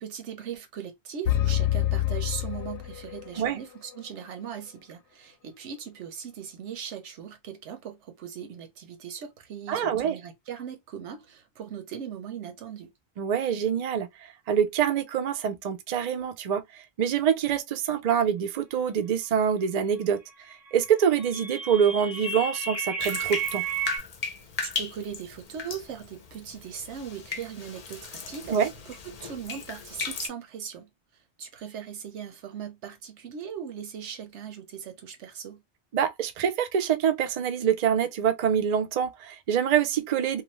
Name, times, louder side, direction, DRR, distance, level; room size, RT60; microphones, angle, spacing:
voice 1, 0.0-12.9 24.6-28.6 28.9-30.9 31.4-35.6, right 8 dB, 85° right, 1.0 m, -39 dB
sound 1, 1.2-3.4, left 13 dB, 85° left, 0.9 m, -26 dB
voice 2, 9.7-10.2 13.2-14.1 14.5-16.6 17.0-20.2 20.5-23.6 28.5-28.7 35.9-40.4, right 8 dB, 55° right, 0.5 m, -25 dB
sound 2, 20.8-24.0, right 6 dB, ahead, 0.7 m, -33 dB
Bathtub (filling or washing), 23.0-30.3, left 5 dB, 45° left, 0.5 m, -36 dB
2.6 x 2.3 x 3.0 m
omnidirectional pair, 1.2 m